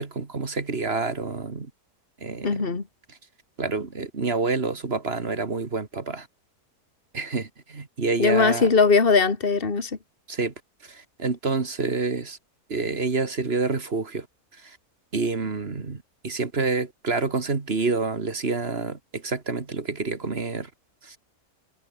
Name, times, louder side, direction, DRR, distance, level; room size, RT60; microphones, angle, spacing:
voice 1, 0.0-1.7 2.2-2.6 3.6-6.3 7.1-8.7 10.3-10.5 10.9-12.4 12.7-14.3 15.1-20.7 21.1-21.2, right 4 dB, 40° right, 2.1 m, -28 dB
voice 2, 2.4-2.8 8.2-10.0, left 4 dB, 35° left, 2.4 m, -20 dB
omnidirectional pair, 1.7 m